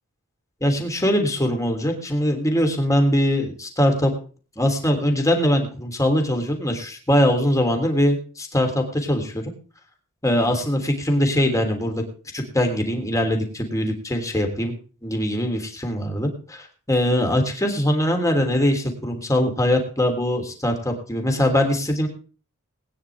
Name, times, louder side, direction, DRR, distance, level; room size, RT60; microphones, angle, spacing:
voice 1, 0.6-4.1 4.6-9.5 10.2-12.0 12.3-14.7 15.0-22.1, equal, 15° left, 3 dB, 3.3 m, -22 dB
21.0 x 10.0 x 3.6 m, 0.38 s
head